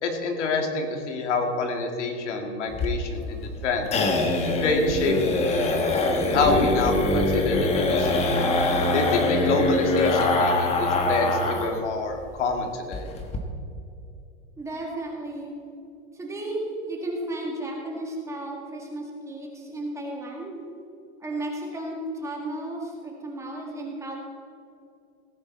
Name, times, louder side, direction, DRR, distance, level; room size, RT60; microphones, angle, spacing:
voice 1, 0.0-3.9 4.6-5.2 6.3-8.3 8.9-13.1, left 3 dB, 80° left, 4 dB, 2.3 m, -27 dB
sound 1, 2.7-11.8 12.1-12.2 12.5-12.6 12.9-13.4, left 2 dB, 20° left, 1.1 m, -23 dB
voice 2, 14.6-15.5 16.1-20.6 21.2-24.1, right 1 dB, 10° right, -1 dB, 1.8 m, -33 dB
17.5 x 9.7 x 4.1 m, 2.6 s
supercardioid pair, 155°, 35 cm